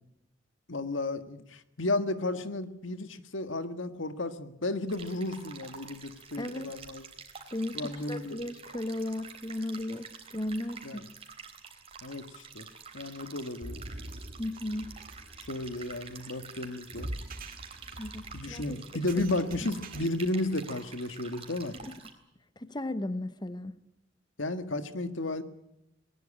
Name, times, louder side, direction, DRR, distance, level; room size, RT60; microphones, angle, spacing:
voice 1, 0.7-7.0 7.7-8.4 10.8-11.0 12.0-12.7 12.9-13.8 15.5-17.1 18.3-21.7 24.4-25.4, left 2 dB, 75° left, 10 dB, 1.8 m, -33 dB
sound 1, 4.9-22.1, right 5 dB, 30° right, 3.7 m, -48 dB
voice 2, 6.4-6.8 7.5-11.0 14.4-14.9 18.0-18.8 19.6-19.7 21.8-22.0 22.6-23.7, left 1 dB, 20° left, 11 dB, 1.0 m, -36 dB
sound 2, 13.6-20.0, right 1 dB, 50° right, 2.2 m, -44 dB
20.0 x 20.0 x 8.7 m, 0.84 s
head